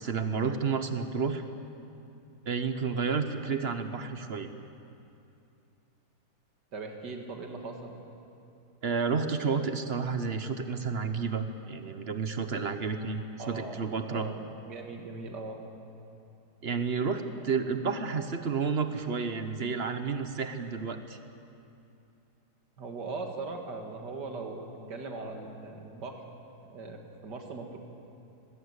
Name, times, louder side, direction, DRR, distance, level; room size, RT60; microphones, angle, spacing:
voice 1, 0.0-1.4 2.5-4.5 8.8-14.3 16.6-21.2, right 5 dB, 45° right, 8 dB, 1.0 m, -31 dB
voice 2, 6.7-8.0 13.4-14.4 14.7-15.6 22.8-26.2 26.6-27.8, right 3 dB, 85° right, 3 dB, 2.5 m, -40 dB
19.5 x 16.5 x 8.3 m, 2.7 s
omnidirectional pair, 1.8 m